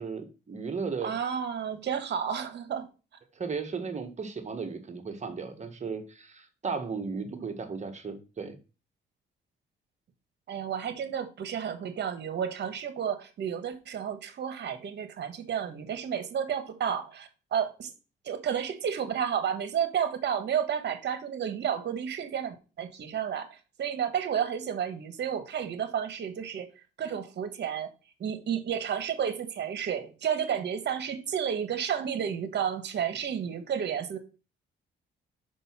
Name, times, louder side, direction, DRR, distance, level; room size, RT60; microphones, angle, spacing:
voice 1, 0.0-1.2 3.3-8.6, right 5 dB, 35° right, 1.6 m, -35 dB
voice 2, 1.0-2.9 7.3-7.5 10.5-17.9 18.2-26.7 27.0-27.9 28.2-34.2, right 8 dB, 60° right, 1.4 m, -31 dB
5.4 x 4.9 x 6.0 m
cardioid pair, 90°, 20 cm